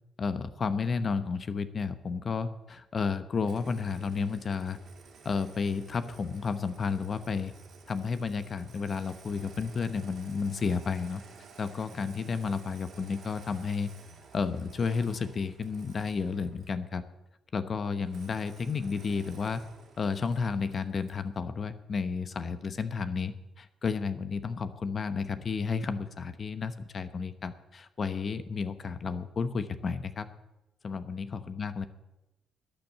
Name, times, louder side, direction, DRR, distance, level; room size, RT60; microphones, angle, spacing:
voice 1, 0.2-4.8 5.2-7.5 7.9-11.2 11.6-13.9 14.3-17.0 17.5-19.6 20.0-30.3 30.8-31.9, left 5 dB, 45° left, 12 dB, 0.9 m, -32 dB
Engine starting, 3.4-16.8 18.1-21.3, right 5 dB, 60° right, 2.5 m, -53 dB
12.0 x 9.0 x 7.4 m, 0.97 s
cardioid pair, 90°, 0 cm